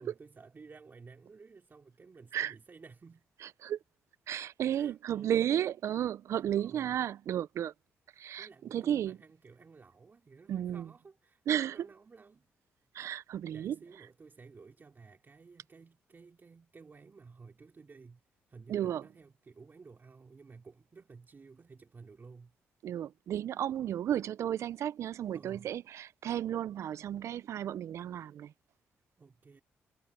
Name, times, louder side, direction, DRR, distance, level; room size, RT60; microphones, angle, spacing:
voice 1, 0.0-3.3 4.8-5.5 6.6-7.0 8.4-12.5 13.5-18.2 18.5-22.5 25.3-25.7 29.2-29.6, right 4 dB, 40° right, 3.2 m, -54 dB
voice 2, 3.4-3.8 4.3-7.7 8.2-9.2 10.5-10.9 11.5-11.9 12.9-13.8 18.7-19.1 22.8-28.5, right 10 dB, 70° right, 0.6 m, -33 dB
supercardioid pair, 60°, 5 cm